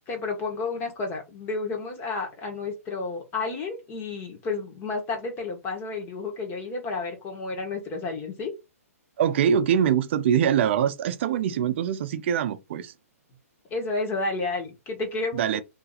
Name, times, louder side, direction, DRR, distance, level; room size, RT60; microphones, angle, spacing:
voice 1, 0.1-8.5 13.7-15.6, left 3 dB, 25° left, 1.4 m, -31 dB
voice 2, 9.2-12.9 15.3-15.6, right 8 dB, 50° right, 0.5 m, -23 dB
2.9 x 2.7 x 4.0 m
hypercardioid pair, 140°, 8 cm